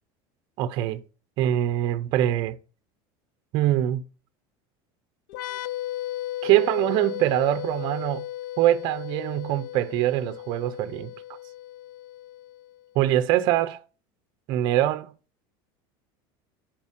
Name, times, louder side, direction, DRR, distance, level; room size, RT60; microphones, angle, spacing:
voice 1, 0.6-1.0 1.4-2.6 3.5-4.0 6.4-8.3 8.6-11.1 13.0-13.8 14.5-15.1, right 13 dB, 40° right, 0.5 m, -23 dB
sound 1, 5.3-12.8, left 14 dB, 70° left, 0.4 m, -35 dB
5.5 x 5.0 x 5.0 m
cardioid pair, 180°, 11 cm